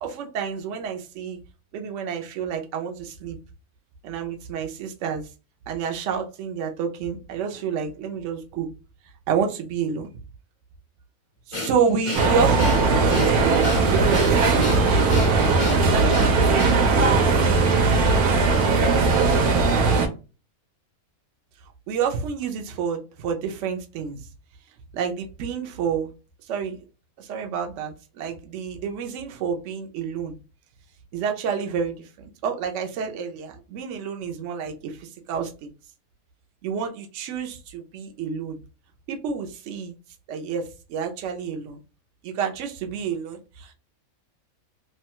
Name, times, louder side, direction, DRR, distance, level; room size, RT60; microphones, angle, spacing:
voice 1, 0.0-1.4 1.7-3.4 4.0-5.3 5.7-8.7 9.3-10.1 11.5-14.8 15.8-17.4 21.9-24.2 24.9-26.1 26.4-26.8 27.2-30.4 31.1-35.7 36.6-38.6 39.1-39.9 40.3-41.8 42.2-43.7, right 6 dB, 65° right, 0.9 m, -29 dB
Breathing, 11.5-17.0, left 2 dB, 50° left, 0.3 m, -32 dB
sound 1, 12.1-20.1, right 4 dB, 85° right, 1.2 m, -19 dB
3.0 x 2.2 x 2.8 m
omnidirectional pair, 1.5 m